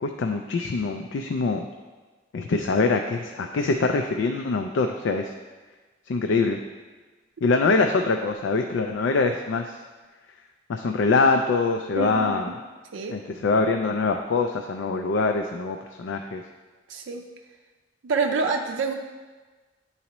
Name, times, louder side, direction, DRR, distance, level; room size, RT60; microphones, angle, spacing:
voice 1, 0.0-1.7 2.3-5.3 6.1-6.6 7.4-9.8 10.7-12.5 13.1-16.4, left 3 dB, 80° left, 5 dB, 0.4 m, -24 dB
voice 2, 11.9-12.5 12.9-13.2 16.9-17.3 18.0-18.9, right 4 dB, 90° right, 2 dB, 0.5 m, -27 dB
9.5 x 4.1 x 3.0 m, 1.3 s
head